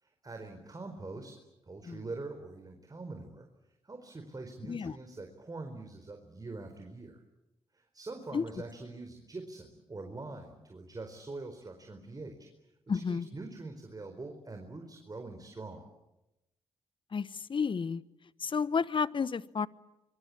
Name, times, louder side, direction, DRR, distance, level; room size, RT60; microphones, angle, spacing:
voice 1, 0.0-3.5 3.8-7.2 7.7-12.5 13.1-15.9, right 3 dB, 30° right, 4.6 m, -44 dB
voice 2, 12.9-13.3 17.1-18.0 18.4-19.7, left 5 dB, 45° left, 1.1 m, -31 dB
25.5 x 24.0 x 8.7 m
supercardioid pair, 50°, 12 cm